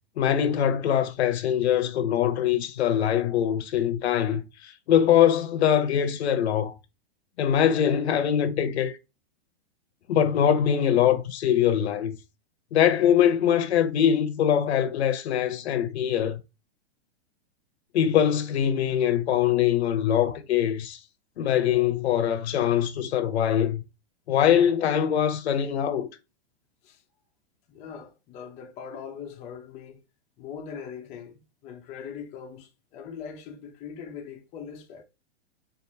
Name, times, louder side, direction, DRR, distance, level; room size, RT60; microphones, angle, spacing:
voice 1, 0.2-6.7 7.4-9.0 10.1-12.2 12.7-16.4 17.9-21.0 21.4-23.8 24.3-26.1, left 9 dB, 75° left, 0.8 m, -23 dB
voice 2, 27.7-30.0 30.4-35.0, left 7 dB, 20° left, 0.6 m, -41 dB
4.6 x 2.6 x 2.7 m
hypercardioid pair, 150°, 33 cm